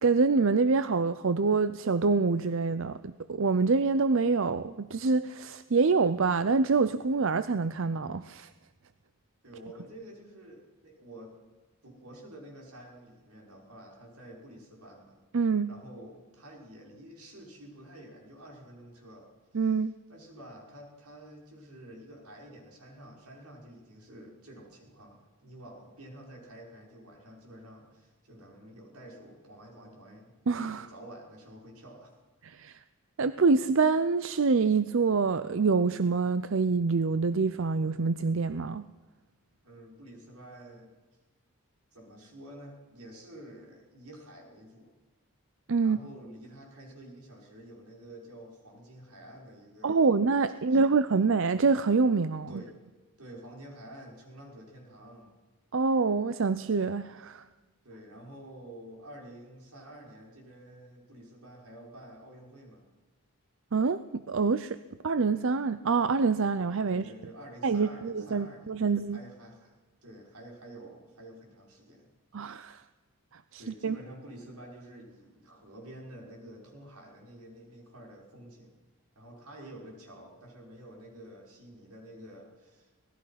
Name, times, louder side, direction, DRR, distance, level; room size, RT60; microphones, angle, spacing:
voice 1, 0.0-8.5 15.3-15.7 19.5-19.9 30.5-30.9 32.4-32.8 33.2-38.8 45.7-46.0 49.8-52.6 55.7-57.4 63.7-64.8 65.0-67.0 67.6-69.2 72.3-72.8 73.5-74.0, right 4 dB, 60° right, 0.5 m, -26 dB
voice 2, 9.4-11.5 11.8-15.2 15.7-30.3 30.7-32.2 39.6-41.0 41.9-44.9 45.8-50.1 50.5-50.9 52.5-52.8 53.2-55.3 57.8-62.8 66.9-69.7 70.0-72.1 73.6-78.8 79.1-83.0, right 1 dB, 85° right, 5.8 m, -49 dB
25.5 x 18.5 x 5.8 m
head